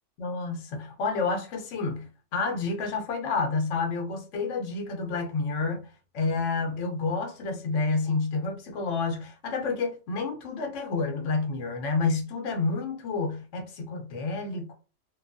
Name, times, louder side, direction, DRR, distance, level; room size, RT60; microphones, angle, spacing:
voice 1, 0.2-5.9 6.1-14.7, left 4 dB, 80° left, 1.0 m, -29 dB
2.9 x 2.2 x 2.5 m
omnidirectional pair, 1.3 m